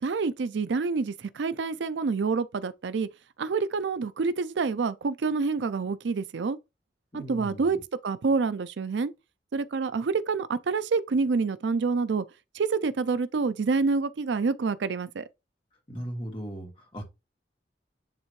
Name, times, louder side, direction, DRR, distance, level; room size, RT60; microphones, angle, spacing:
voice 1, 0.0-3.1 3.4-6.6 7.1-7.8 8.0-9.1 9.5-12.2 12.5-15.2, right 4 dB, 75° right, 0.4 m, -27 dB
voice 2, 7.1-7.8 15.9-17.0, right 1 dB, 30° left, 2.1 m, -37 dB
9.9 x 3.3 x 3.1 m
head